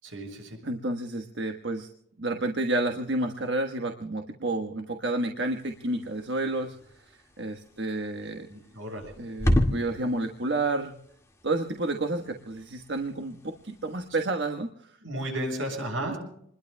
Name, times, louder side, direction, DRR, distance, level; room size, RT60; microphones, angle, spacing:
voice 1, 0.0-0.6 8.5-9.1 15.0-16.2, right 1 dB, 80° right, 3 dB, 7.4 m, -33 dB
voice 2, 0.6-1.9 2.2-6.7 7.4-8.5 9.2-10.9 11.4-14.9 16.1-16.2, right 2 dB, 60° right, 4 dB, 1.4 m, -30 dB
sound 1, 5.4-14.3, left 1 dB, 15° left, 2.0 m, -34 dB
28.5 x 21.5 x 2.3 m, 0.70 s
head